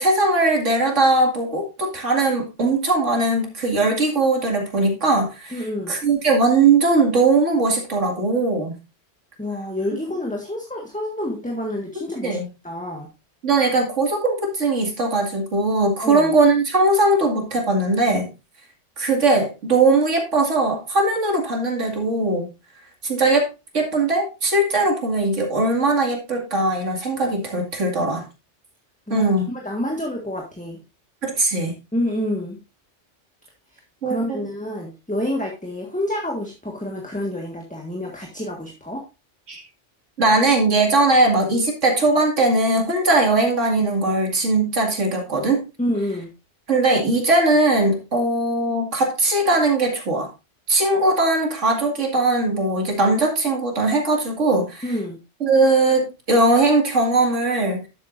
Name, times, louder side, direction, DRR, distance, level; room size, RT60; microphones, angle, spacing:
voice 1, 0.0-8.8 12.2-12.5 13.4-18.3 19.0-22.5 23.0-23.5 23.7-28.2 29.1-29.5 31.2-31.7 34.0-34.4 39.5-39.6 40.2-45.6 46.7-50.3 50.7-54.8 55.4-57.8, right 2 dB, 85° right, 2 dB, 2.7 m, -20 dB
voice 2, 5.5-5.9 9.4-12.4 12.6-13.1 16.0-16.3 29.1-30.8 31.9-32.6 34.0-39.0 45.8-46.3 54.8-55.2, left 1 dB, 5° left, 0 dB, 1.6 m, -28 dB
11.0 x 8.2 x 2.6 m, 0.28 s
omnidirectional pair, 1.2 m